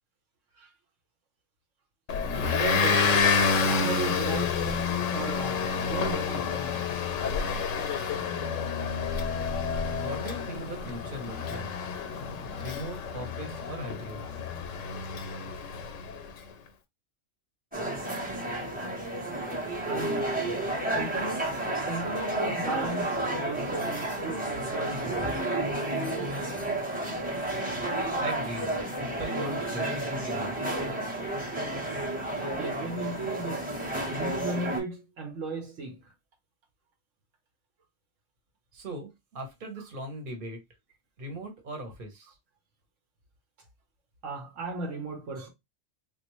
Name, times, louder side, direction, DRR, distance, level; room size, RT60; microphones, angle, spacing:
Motor vehicle (road) / Engine, 2.1-16.3, left 5 dB, 90° left, 1.0 m, -29 dB
voice 1, 2.4-3.3 3.6-4.6 5.1-7.0 19.8-20.4 20.9-21.6 21.8-25.4 32.4-33.7 34.1-36.1 44.2-45.5, right 3 dB, 80° right, 1.2 m, -36 dB
voice 2, 10.0-11.7 12.6-14.2 28.2-30.6 38.7-40.6 41.2-42.3, right 1 dB, 45° right, 1.1 m, -39 dB
sound 1, 17.7-34.8, right 1 dB, 10° right, 0.8 m, -31 dB
3.4 x 2.4 x 3.0 m
omnidirectional pair, 1.3 m